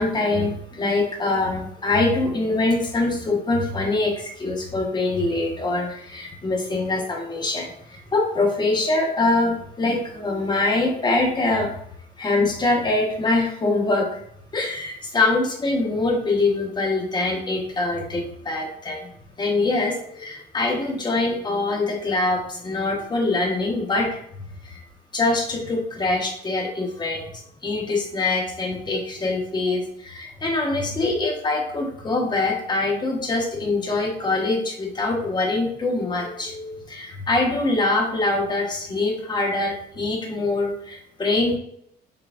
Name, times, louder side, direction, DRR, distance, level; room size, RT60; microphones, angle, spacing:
voice 1, 0.0-11.7 12.2-14.1 14.5-19.1 19.4-24.2 24.6-24.8 25.1-41.6, left 2 dB, 25° left, 1 dB, 1.2 m, -24 dB
5.8 x 3.2 x 2.5 m, 0.68 s
cardioid pair, 110°, 17 cm